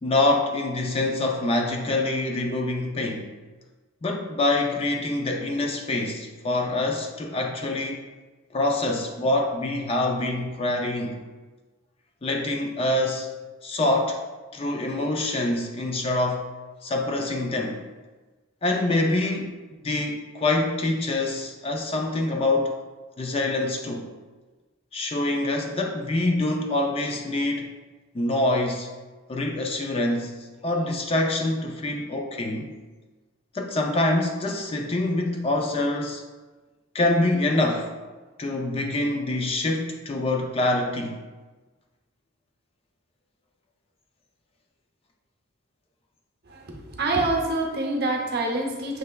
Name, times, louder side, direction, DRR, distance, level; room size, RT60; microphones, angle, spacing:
voice 1, 0.0-3.3 4.0-8.0 8.5-11.2 12.2-13.3 13.6-14.2 14.5-16.4 16.8-17.8 18.6-19.6 19.8-22.7 23.2-24.1 24.9-27.7 28.1-28.9 29.3-30.3 30.6-32.8 33.5-36.2 36.9-37.9 38.4-41.2, left 2 dB, 25° left, 2 dB, 0.3 m, -25 dB
voice 2, 46.5-49.0, right 2 dB, 45° right, 1 dB, 0.7 m, -26 dB
6.4 x 3.2 x 2.2 m, 1.3 s
head